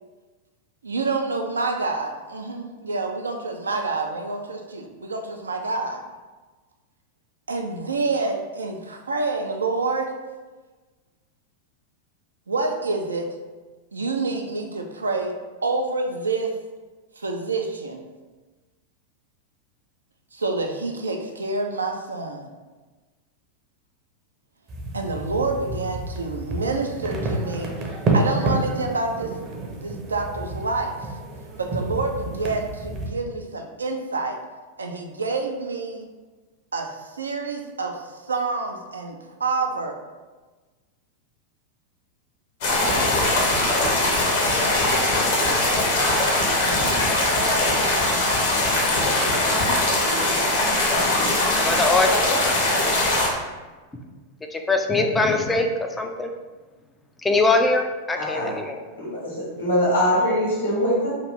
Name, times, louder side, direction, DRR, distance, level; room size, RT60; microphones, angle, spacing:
voice 1, 0.8-6.0 7.5-10.1 12.5-13.3 13.9-15.4 15.6-16.5 17.2-18.1 20.3-22.5 24.9-27.7 28.1-29.3 29.8-31.1 31.6-34.4 34.8-36.1 36.7-40.0, right 3 dB, 75° right, 4 dB, 0.3 m, -27 dB
sound 1, 24.7-33.1, right 2 dB, 30° right, 0.6 m, -29 dB
sound 2, 42.6-53.3, left 2 dB, 50° left, 0.8 m, -21 dB
voice 2, 51.6-52.2 54.5-55.7 56.0-56.3 57.2-58.8, left 3 dB, 10° left, 4 dB, 0.3 m, -22 dB
voice 3, 58.2-58.6 59.0-59.2 59.6-61.1, equal, 80° left, -6 dB, 1.4 m, -22 dB
2.9 x 2.4 x 3.4 m, 1.3 s
figure-of-eight pair, 90°, 0 cm